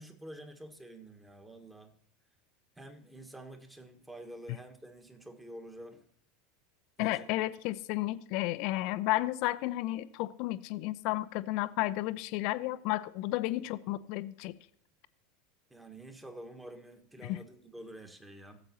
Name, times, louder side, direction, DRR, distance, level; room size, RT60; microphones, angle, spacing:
voice 1, 0.0-1.9 2.8-6.1 7.0-7.3 15.7-18.6, right 1 dB, 10° right, 1.5 m, -48 dB
voice 2, 7.0-14.5 17.2-17.4, left 17 dB, 55° left, 0.5 m, -32 dB
17.0 x 7.7 x 2.9 m
figure-of-eight pair, 80°, 0 cm